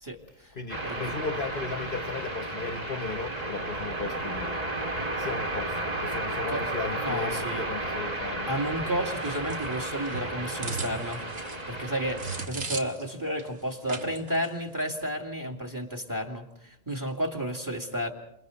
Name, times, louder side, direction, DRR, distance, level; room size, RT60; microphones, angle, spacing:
voice 1, 0.0-0.5 0.8-1.1 6.5-6.6 7.0-7.7 8.5-11.2 11.7-18.1, equal, 15° right, 2.4 m, -32 dB
voice 2, 0.5-4.6 5.2-8.5, left 4 dB, 45° left, 1.1 m, -36 dB
sound 1, 0.7-12.5, right 2 dB, 30° right, 1.8 m, -33 dB
sound 2, 9.2-13.1 13.4-13.5 13.9-14.5 14.8-15.0, right 4 dB, 60° right, 2.0 m, -37 dB
28.5 x 27.5 x 4.1 m
omnidirectional pair, 1.3 m